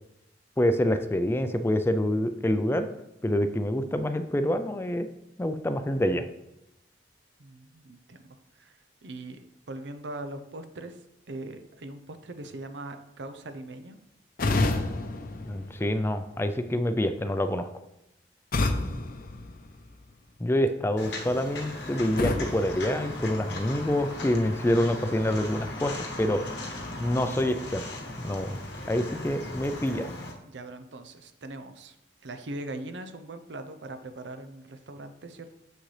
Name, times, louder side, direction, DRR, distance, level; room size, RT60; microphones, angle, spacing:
voice 1, 0.6-2.9 3.2-5.1 5.4-6.2 15.4-17.7 20.4-26.4 27.0-27.8 28.2-28.6 28.9-30.1, left 1 dB, 15° left, 9 dB, 0.4 m, -26 dB
voice 2, 7.4-14.0 29.8-30.0 30.4-32.0 32.2-35.5, right 2 dB, 85° right, 8 dB, 0.7 m, -41 dB
sound 1, 14.4-16.4 18.5-20.2 22.2-23.8, left 2 dB, 55° left, 0.6 m, -30 dB
Walk footsteps, 21.0-30.3, left 2 dB, 70° left, 1.1 m, -38 dB
7.0 x 6.3 x 3.3 m, 0.86 s
head